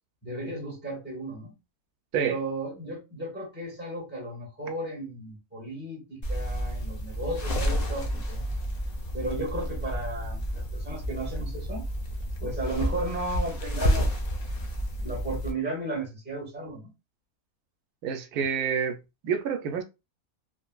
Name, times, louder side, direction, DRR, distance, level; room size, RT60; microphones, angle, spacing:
voice 1, 0.2-1.5 2.1-8.5 9.1-11.8 12.4-14.1 15.0-16.9, right 2 dB, 5° right, 1.4 m, -34 dB
sound 1, 6.2-15.5, equal, 65° left, 0.4 m, -30 dB
voice 2, 18.0-19.8, right 7 dB, 90° right, 1.1 m, -28 dB
3.3 x 2.5 x 2.3 m
omnidirectional pair, 1.6 m